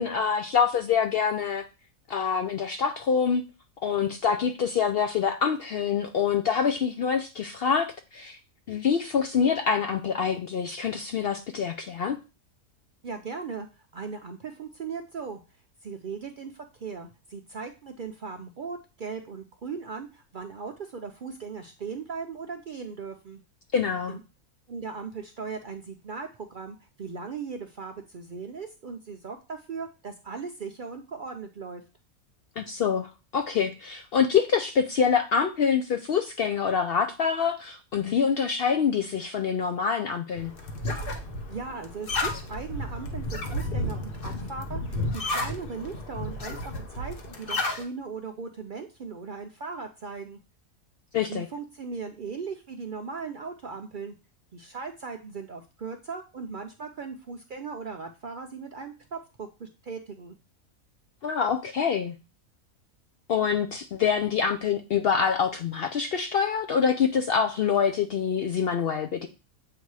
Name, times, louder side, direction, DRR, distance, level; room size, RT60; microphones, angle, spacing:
voice 1, 0.0-1.6 2.1-3.4 3.8-8.4 8.7-12.2 23.7-24.1 32.6-40.5 51.1-51.5 61.2-62.1 63.3-69.3, left 6 dB, 70° left, 6 dB, 0.5 m, -25 dB
voice 2, 13.0-13.7 13.9-15.4 15.8-23.4 24.1-24.2 24.7-31.8 41.5-50.4 51.3-54.2 54.5-60.4, right 5 dB, 60° right, 5 dB, 0.5 m, -38 dB
sound 1, 40.4-47.8, left 1 dB, 45° left, 0.9 m, -32 dB
7.7 x 2.8 x 4.7 m, 0.30 s
omnidirectional pair, 1.5 m